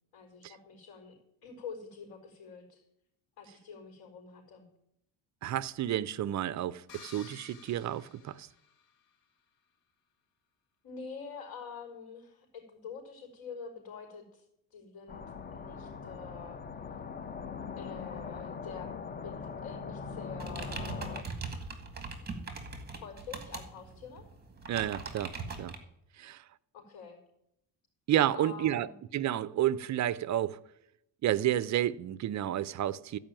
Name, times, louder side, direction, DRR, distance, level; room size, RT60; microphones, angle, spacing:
voice 1, 0.1-1.1 1.4-2.8 3.4-4.7 10.8-14.4 14.7-15.2 15.5-16.6 17.8-18.9 19.2-21.4 23.0-24.2 26.7-27.2 28.3-28.9, left 5 dB, 55° left, 4.4 m, -46 dB
voice 2, 5.4-8.5 24.7-25.3 25.6-25.7 26.2-26.4 28.1-28.9 29.1-30.6 31.2-33.2, right 12 dB, 40° right, 0.5 m, -30 dB
sound 1, 6.9-9.1, left 6 dB, 80° left, 2.4 m, -53 dB
sound 2, 15.1-21.2, left 5 dB, 20° left, 0.6 m, -41 dB
sound 3, 20.4-25.8, right 4 dB, 20° right, 2.0 m, -41 dB
14.0 x 5.4 x 8.9 m
cardioid pair, 130°, 44 cm